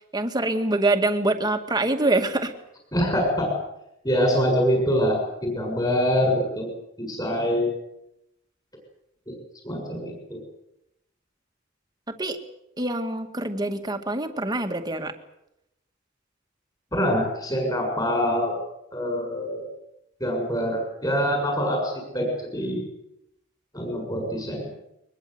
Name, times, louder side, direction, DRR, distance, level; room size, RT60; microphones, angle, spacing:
voice 1, 0.1-2.5 12.1-12.4 12.8-15.1, right 2 dB, 20° right, 6 dB, 2.2 m, -25 dB
voice 2, 2.9-3.5 4.0-6.7 7.0-7.7 9.3-9.4 9.6-10.4 16.9-18.6 18.9-19.7 20.2-22.8 23.7-24.7, equal, 20° left, 2 dB, 7.0 m, -25 dB
23.0 x 21.5 x 8.1 m, 0.83 s
head